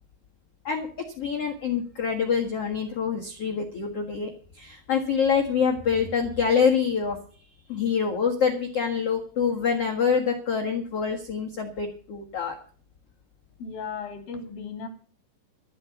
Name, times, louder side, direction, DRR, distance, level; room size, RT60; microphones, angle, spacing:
voice 1, 1.2-7.2 7.7-12.5, left 6 dB, 80° left, 1 dB, 1.3 m, -26 dB
voice 2, 13.6-14.9, left 5 dB, 55° left, 5 dB, 4.1 m, -36 dB
13.5 x 7.7 x 7.1 m, 0.43 s
omnidirectional pair, 5.6 m